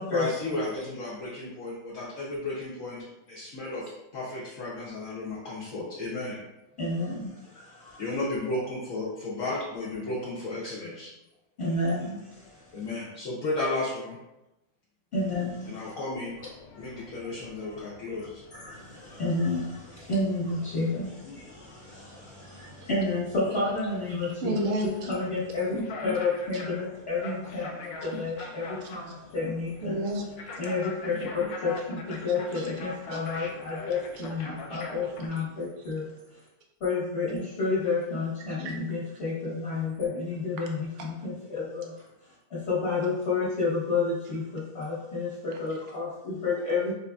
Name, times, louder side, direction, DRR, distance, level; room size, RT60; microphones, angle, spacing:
voice 1, 0.1-6.4 8.0-11.1 12.7-14.2 15.7-16.4 16.8-18.5, left 2 dB, 65° left, -6 dB, 1.0 m, -34 dB
voice 2, 6.8-8.0 11.6-12.9 15.1-15.9 18.5-24.5 25.1-30.0 30.6-36.1 36.8-41.9 42.5-46.9, left 3 dB, 45° left, -10 dB, 1.2 m, -30 dB
sound 1, 16.2-35.3, left 2 dB, 80° left, 0.5 m, -44 dB
voice 3, 24.2-25.1 26.5-26.6 28.0-29.2 29.8-30.6 32.5-32.7 33.1-33.4 33.7-35.4 35.9-36.0 38.4-38.8 39.1-39.2 40.6-41.1 45.5-45.8 46.5-46.6, right 1 dB, 80° right, 1 dB, 0.5 m, -36 dB
4.6 x 2.5 x 2.3 m, 0.95 s
omnidirectional pair, 1.6 m